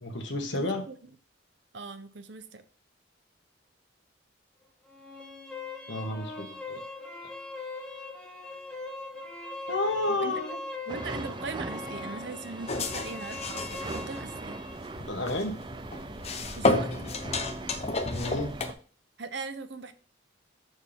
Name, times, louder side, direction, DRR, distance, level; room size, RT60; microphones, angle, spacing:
voice 1, 0.0-0.8 5.9-6.8 9.7-10.6 15.1-15.5 18.1-18.5, left 2 dB, 70° left, 4 dB, 1.6 m, -31 dB
voice 2, 0.5-0.9 1.7-2.6 10.1-10.3 10.9-14.6 16.5-16.9 19.2-19.9, right 4 dB, 65° right, 11 dB, 0.7 m, -40 dB
sound 1, 4.9-14.8, left 3 dB, 5° left, 1.3 m, -41 dB
sound 2, 10.9-18.7, right 3 dB, 25° right, 0.4 m, -40 dB
sound 3, 12.7-18.7, left 2 dB, 30° left, 0.7 m, -32 dB
6.5 x 6.4 x 3.5 m, 0.40 s
head